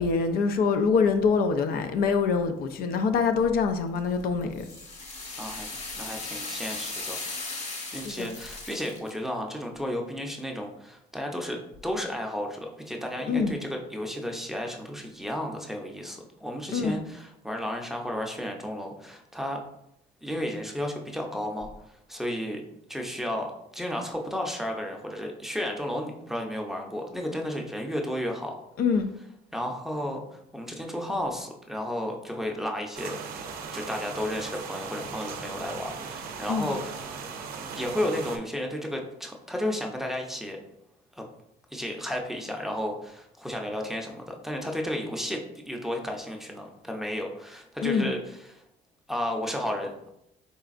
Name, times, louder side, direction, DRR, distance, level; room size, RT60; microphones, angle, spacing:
voice 1, 0.0-4.6 8.0-8.3 13.3-13.5 16.7-17.0 28.8-29.1 36.5-36.7 47.8-48.1, left 5 dB, 65° left, 0.4 m, -25 dB
sound 1, 4.0-9.1, left 3 dB, 40° left, 0.9 m, -37 dB
voice 2, 5.9-11.6 11.8-19.6 20.2-22.6 22.9-28.5 29.5-33.2 33.7-37.0 37.7-40.6 41.2-41.3 41.7-48.6 49.1-50.1, left 1 dB, ahead, 0.5 m, -33 dB
sound 2, 32.9-38.4, right 5 dB, 60° right, 0.6 m, -38 dB
4.0 x 3.3 x 2.4 m
cardioid pair, 110°, 17 cm